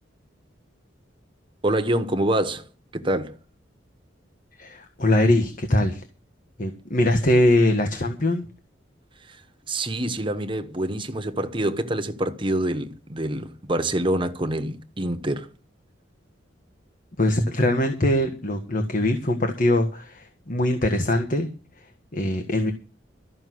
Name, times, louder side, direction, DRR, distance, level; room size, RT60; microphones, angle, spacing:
voice 1, 1.6-2.7 2.9-3.4 9.3-9.4 9.7-15.5, right 1 dB, 25° right, 1.2 m, -26 dB
voice 2, 4.6-6.0 6.6-8.5 17.2-21.5 22.1-22.7, left 1 dB, 45° left, 1.6 m, -22 dB
13.5 x 6.1 x 9.4 m
head